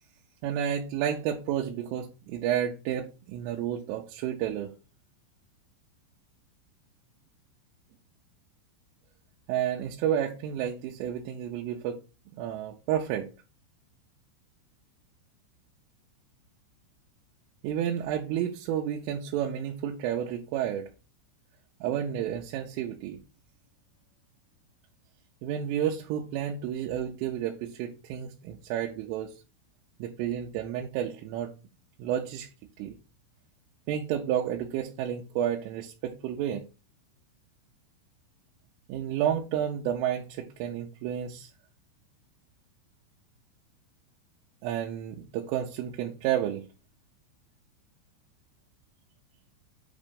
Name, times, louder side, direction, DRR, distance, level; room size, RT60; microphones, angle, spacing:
voice 1, 0.4-4.7 9.5-12.0 12.4-13.3 17.6-20.9 21.8-23.2 25.4-29.3 30.0-31.5 32.0-32.5 32.8-32.9 33.9-36.7 38.9-41.5 44.6-46.7, right 10 dB, 85° right, 3.2 m, -31 dB
8.4 x 3.0 x 5.1 m
omnidirectional pair, 5.8 m